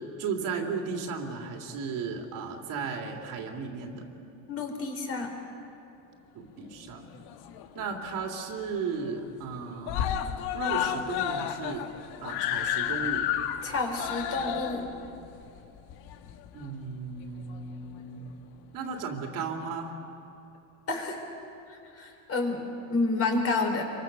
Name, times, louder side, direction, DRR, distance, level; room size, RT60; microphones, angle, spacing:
voice 1, 0.2-4.1 6.3-7.1 7.7-11.9 12.2-13.3 16.5-18.3 18.7-20.0, right 5 dB, 50° right, 2 dB, 3.0 m, -35 dB
voice 2, 4.5-5.3 13.6-14.9 20.9-21.2 21.7-22.6 22.9-23.8, left 3 dB, 35° left, 2 dB, 4.6 m, -29 dB
Screaming, 7.0-7.9 8.2-8.3 8.6-8.7 9.0-9.5 9.8-16.7 17.5-17.6, left 10 dB, 65° left, 1.5 m, -31 dB
27.0 x 24.0 x 6.8 m, 2.7 s
supercardioid pair, 125°, 41 cm